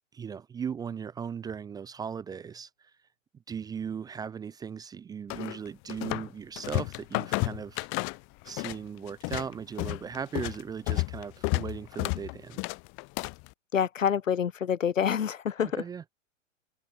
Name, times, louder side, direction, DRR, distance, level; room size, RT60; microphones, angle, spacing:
voice 1, 0.1-2.9 3.5-7.9 8.4-12.6 15.6-16.1, right 7 dB, 10° right, 0.6 m, -38 dB
sound 1, 5.3-6.3 6.6-8.8 9.1-13.5, left 32 dB, 30° left, 1.1 m, -31 dB
voice 2, 13.7-15.8, left 8 dB, 85° left, 0.7 m, -27 dB
open air
figure-of-eight pair, 110°, 38 cm